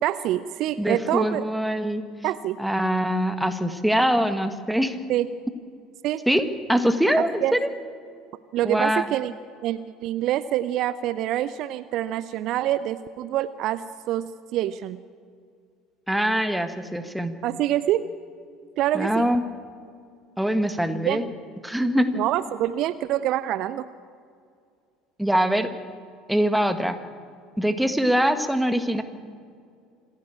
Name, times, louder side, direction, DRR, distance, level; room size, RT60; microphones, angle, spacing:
voice 1, 0.0-1.5 2.2-2.6 5.1-5.3 6.0-6.2 7.2-7.6 8.5-9.3 9.6-14.3 14.5-15.0 17.4-18.0 18.8-19.3 21.0-21.2 22.1-23.9, right 13 dB, 55° right, 15 dB, 0.5 m, -26 dB
voice 2, 0.8-2.0 2.6-5.0 6.3-7.7 8.6-9.1 16.1-17.4 18.9-19.4 20.4-21.3 21.6-22.1 25.2-25.7 26.3-27.0 27.6-29.0, equal, 5° right, 9 dB, 1.7 m, -23 dB
26.0 x 11.5 x 8.8 m, 2.2 s
figure-of-eight pair, 65°, 0 cm